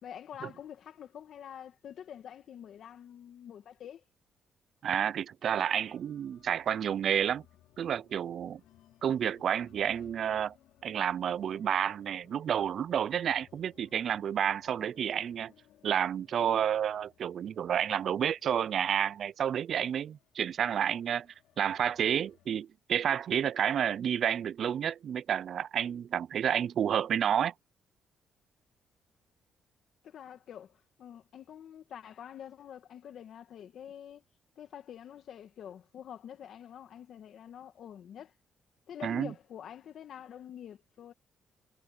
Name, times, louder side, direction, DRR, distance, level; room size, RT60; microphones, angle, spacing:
voice 1, 0.0-4.0 30.0-34.2 34.6-38.3 38.9-41.1, left 9 dB, 65° left, 2.2 m, -47 dB
voice 2, 4.8-7.4 7.8-8.6 9.0-10.5 10.8-15.5 15.8-21.3 21.6-27.5 39.0-39.3, right 9 dB, 60° right, 0.4 m, -30 dB
sound 1, 5.8-22.5, left 13 dB, 85° left, 5.2 m, -64 dB
cardioid pair, 90°, 0 cm